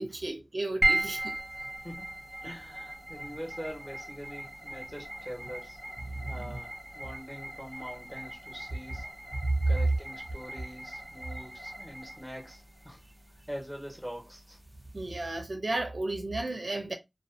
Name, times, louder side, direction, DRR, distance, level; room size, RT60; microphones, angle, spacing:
voice 1, 0.0-1.4 6.1-6.6 9.4-9.7 14.9-16.9, right 2 dB, 70° right, 0.4 m, -32 dB
sound 1, 0.8-15.3, right 1 dB, 15° right, 1.0 m, -37 dB
voice 2, 1.8-5.8 6.3-9.1 9.7-13.0 13.5-14.6, equal, 5° left, 1.1 m, -43 dB
2.5 x 2.2 x 2.5 m
wide cardioid pair, 45°, 0 cm